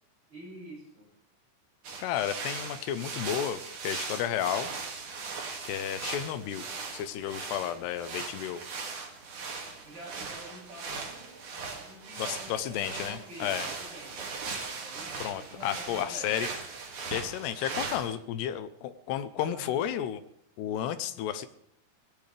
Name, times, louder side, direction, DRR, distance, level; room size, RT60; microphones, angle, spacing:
voice 1, 0.3-1.1 9.8-16.4 19.4-19.8, right 2 dB, 25° right, -4 dB, 8.6 m, -47 dB
sound 1, 1.8-18.1, right 4 dB, 45° right, 3.1 m, -39 dB
voice 2, 2.0-4.7 5.6-6.7 6.9-8.6 12.2-13.7 15.2-16.5 17.1-20.2 20.6-21.5, left 10 dB, 80° left, 10 dB, 2.5 m, -32 dB
Shatter, 12.6-13.2 13.5-13.6 14.5-15.5 16.5-17.5, left 1 dB, 20° left, 6.6 m, -54 dB
23.0 x 17.0 x 3.4 m, 0.72 s
omnidirectional pair, 5.8 m